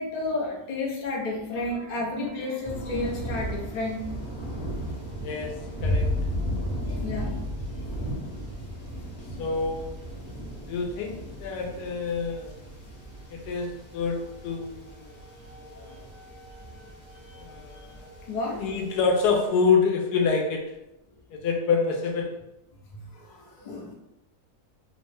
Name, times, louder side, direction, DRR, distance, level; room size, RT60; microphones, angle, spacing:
voice 1, 0.0-4.0 6.4-6.6 7.0-7.3 18.3-18.6 23.7-23.9, left 2 dB, 60° left, -2 dB, 0.4 m, -31 dB
sound 1, 2.6-19.5, right 1 dB, 25° left, 0.9 m, -38 dB
voice 2, 5.2-5.5 5.8-6.1 9.4-9.9 10.7-12.5 13.3-14.2 14.4-15.2 17.4-18.0 18.6-20.6 21.3-22.3, left 5 dB, 90° left, 2 dB, 1.2 m, -26 dB
Boom, 5.8-13.6, left 2 dB, 50° right, 0.8 m, -33 dB
2.8 x 2.1 x 3.3 m, 0.89 s
omnidirectional pair, 1.7 m